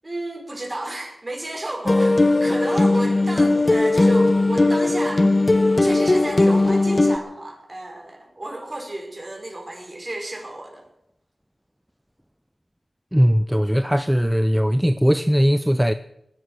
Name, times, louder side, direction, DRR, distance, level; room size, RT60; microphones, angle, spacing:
voice 1, 0.0-5.3 5.8-10.8, right 1 dB, 35° right, 5.4 m, -33 dB
sound 1, 1.9-7.2, left 2 dB, 35° left, 0.9 m, -18 dB
voice 2, 13.1-15.9, equal, 5° right, 0.6 m, -19 dB
19.5 x 11.0 x 6.6 m
cardioid pair, 55°, 0 cm